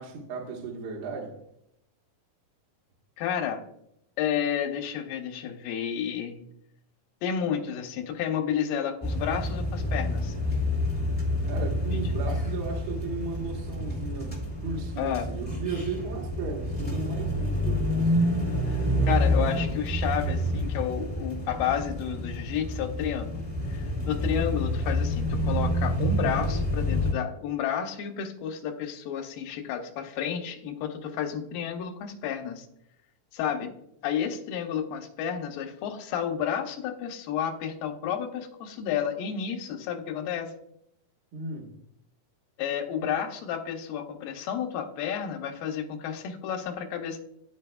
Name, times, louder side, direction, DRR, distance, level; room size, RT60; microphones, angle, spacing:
voice 1, 0.0-1.4 11.4-18.2 41.3-41.7 43.0-43.1, right 4 dB, 70° right, 1.1 m, -35 dB
voice 2, 3.2-3.6 4.2-6.5 7.2-10.3 11.9-12.0 15.0-15.3 18.7-23.4 23.7-32.7 33.3-33.7 34.0-40.5 42.6-47.2, left 8 dB, 90° left, 2.4 m, -31 dB
sound 1, 9.0-27.1, equal, 15° left, 0.3 m, -28 dB
12.5 x 4.2 x 2.2 m
omnidirectional pair, 4.1 m